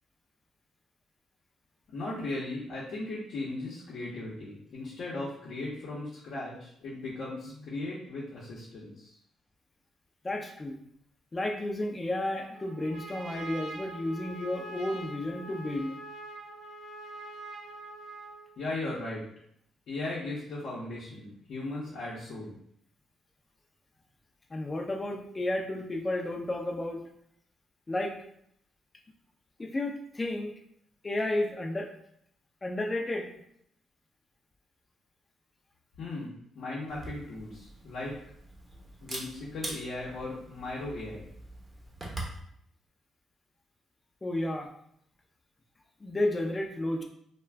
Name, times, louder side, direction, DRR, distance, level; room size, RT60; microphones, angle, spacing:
voice 1, 1.9-9.1 18.6-19.2 19.9-22.6 36.0-38.2 39.0-41.3, left 2 dB, 70° left, -7 dB, 0.7 m, -37 dB
voice 2, 10.2-10.8 11.3-16.0 24.5-27.0 27.9-28.1 29.6-30.5 31.0-31.9 32.6-33.3 44.2-44.7 46.0-47.0, left 1 dB, 25° left, 1 dB, 0.5 m, -32 dB
Trumpet, 12.5-18.5, right 2 dB, 75° right, 0.6 m, -44 dB
Camera, 36.9-42.4, right 1 dB, 25° right, 0.8 m, -43 dB
2.3 x 2.1 x 3.3 m, 0.70 s
cardioid pair, 90°, 0 cm